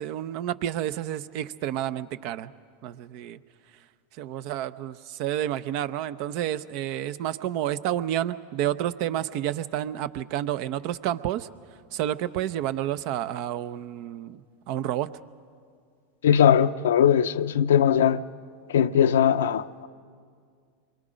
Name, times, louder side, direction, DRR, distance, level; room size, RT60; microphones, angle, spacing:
voice 1, 0.0-2.5 2.8-3.4 4.2-11.5 11.9-14.4 14.7-15.1, right 12 dB, 60° right, 0.7 m, -30 dB
voice 2, 16.2-18.2 18.7-19.9, left 9 dB, 80° left, 0.6 m, -20 dB
28.5 x 23.5 x 5.1 m
hypercardioid pair, 100°, 0 cm